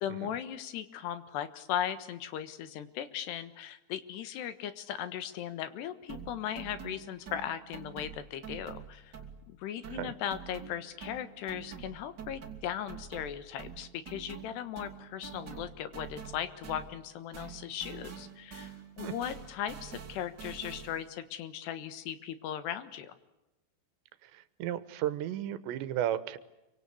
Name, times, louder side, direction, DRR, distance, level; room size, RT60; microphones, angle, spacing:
voice 1, 0.0-9.2 9.5-23.2, left 10 dB, 75° left, 12 dB, 3.5 m, -38 dB
sound 1, 6.1-9.6 9.8-17.1 17.3-21.1, right 7 dB, 30° right, 2.6 m, -46 dB
voice 2, 24.2-26.4, right 11 dB, 85° right, 15 dB, 3.4 m, -34 dB
27.5 x 24.5 x 8.4 m, 0.97 s
omnidirectional pair, 4.9 m